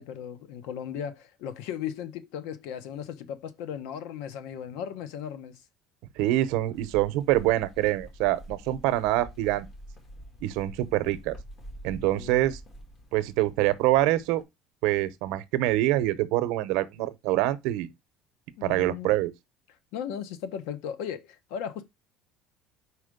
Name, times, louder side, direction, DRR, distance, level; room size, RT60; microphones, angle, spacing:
voice 1, 0.0-5.6 12.1-12.5 18.6-19.1 19.9-21.8, left 8 dB, 80° left, 0.9 m, -36 dB
voice 2, 6.2-9.7 10.4-11.4 11.8-12.6 13.1-14.4 14.8-17.9 18.6-19.3, right 15 dB, 75° right, 0.7 m, -25 dB
sound 1, 6.7-14.4, equal, 35° left, 2.1 m, -47 dB
5.0 x 4.3 x 5.1 m
cardioid pair, 155°, 0 cm